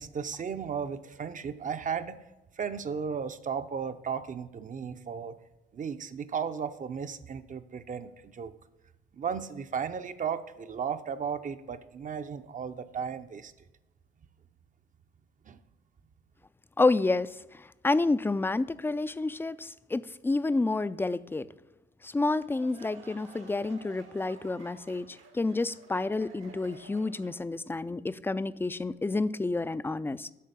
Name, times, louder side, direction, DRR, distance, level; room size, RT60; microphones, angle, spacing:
voice 1, 0.0-2.2 2.5-5.4 5.7-8.5 9.1-13.5 15.5-15.6, right 7 dB, 40° right, 11 dB, 0.6 m, -35 dB
voice 2, 16.8-17.4 17.8-21.5 22.0-30.3, left 3 dB, 10° left, 15 dB, 0.3 m, -29 dB
sound 1, 22.2-27.5, right 5 dB, 80° right, 1.4 m, -53 dB
8.5 x 5.6 x 6.7 m, 1.0 s
cardioid pair, 90°, 20 cm